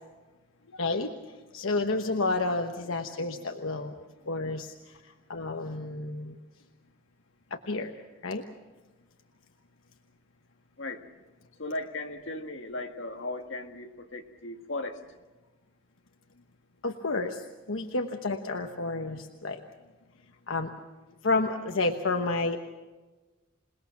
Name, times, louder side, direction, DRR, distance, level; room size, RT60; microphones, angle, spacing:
voice 1, 0.7-3.9 4.3-4.7 5.3-6.4 7.5-7.9 8.2-8.4 16.8-19.6 20.5-20.7 21.2-22.6, left 3 dB, 85° left, 4 dB, 1.2 m, -30 dB
voice 2, 11.6-15.0, left 2 dB, 70° left, 4 dB, 1.9 m, -37 dB
27.5 x 20.0 x 5.9 m, 1.2 s
head